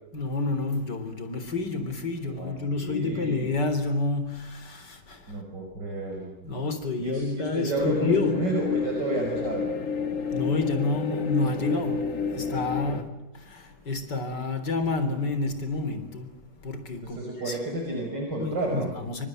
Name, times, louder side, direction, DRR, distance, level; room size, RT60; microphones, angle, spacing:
voice 1, 0.1-5.4 6.4-8.4 10.3-13.1 13.3-17.2 17.4-17.6 18.4-19.3, left 3 dB, 80° left, 4.2 m, -29 dB
voice 2, 2.4-3.5 5.3-6.3 7.0-9.7 12.9-13.0 17.0-18.9, right 2 dB, 80° right, 6.0 m, -31 dB
sound 1, 7.8-13.0, left 6 dB, 50° left, 1.8 m, -30 dB
28.5 x 26.0 x 7.9 m
omnidirectional pair, 1.8 m